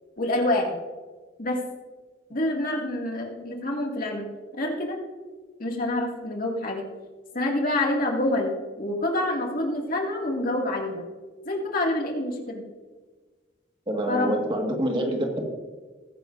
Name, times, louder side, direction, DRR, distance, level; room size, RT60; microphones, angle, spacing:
voice 1, 0.2-0.8 1.4-1.6 2.3-4.3 4.6-5.0 5.6-6.9 7.3-11.0 11.4-12.6 14.1-14.4, left 1 dB, 50° left, 0 dB, 2.3 m, -27 dB
voice 2, 13.9-15.5, right 1 dB, 30° right, 1 dB, 1.8 m, -26 dB
20.5 x 10.0 x 2.7 m, 1.4 s
head